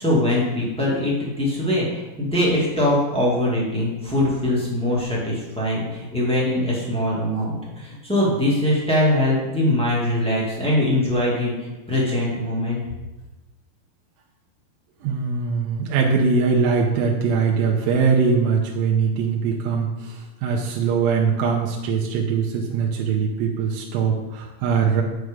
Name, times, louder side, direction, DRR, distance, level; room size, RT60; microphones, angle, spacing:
voice 1, 0.0-12.8, left 1 dB, 5° left, -6 dB, 0.8 m, -22 dB
voice 2, 15.0-25.0, right 5 dB, 85° right, -1 dB, 2.5 m, -22 dB
9.1 x 4.8 x 5.2 m, 1.1 s
omnidirectional pair, 4.1 m